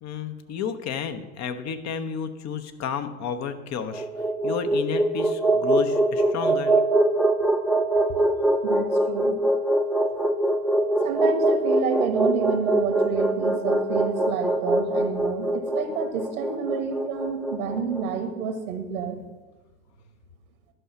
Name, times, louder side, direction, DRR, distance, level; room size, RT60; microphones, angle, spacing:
voice 1, 0.0-4.1 4.4-6.7, left 7 dB, 40° left, 9 dB, 0.9 m, -31 dB
sound 1, 3.8-18.1, right 2 dB, ahead, 0.3 m, -23 dB
voice 2, 8.6-9.4 11.0-19.2, right 6 dB, 75° right, 7 dB, 1.5 m, -29 dB
11.0 x 5.6 x 5.7 m, 1.2 s
hypercardioid pair, 80°, 43 cm